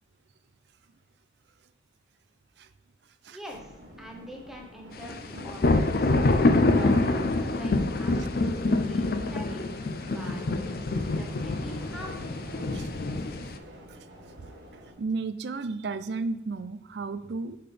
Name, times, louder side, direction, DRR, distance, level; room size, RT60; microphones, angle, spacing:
voice 1, 3.3-6.1 6.6-9.6 10.0-12.3, equal, ahead, -1 dB, 1.0 m, -45 dB
sound 1, 3.5-14.9, equal, 80° right, 1.3 m, -47 dB
sound 2, 5.1-13.6, left 2 dB, 50° left, 0.4 m, -26 dB
voice 2, 15.0-17.6, right 3 dB, 65° right, 12 dB, 0.4 m, -33 dB
6.6 x 5.8 x 3.4 m, 0.88 s
head